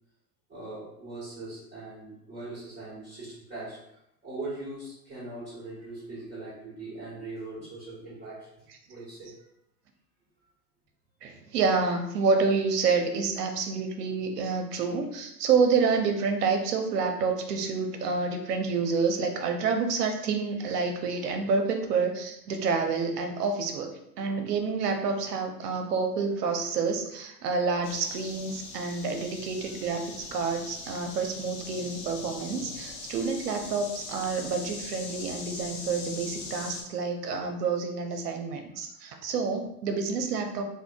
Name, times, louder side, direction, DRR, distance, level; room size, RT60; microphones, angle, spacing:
voice 1, 0.5-3.8 4.2-8.6 8.9-9.4, right 2 dB, 15° right, -12 dB, 1.5 m, -40 dB
voice 2, 11.2-23.9 24.2-40.6, right 4 dB, 70° right, 4 dB, 0.7 m, -28 dB
sound 1, 27.8-36.8, left 4 dB, 40° left, 0.7 m, -41 dB
3.5 x 2.2 x 2.3 m, 0.79 s
hypercardioid pair, 95°, 49 cm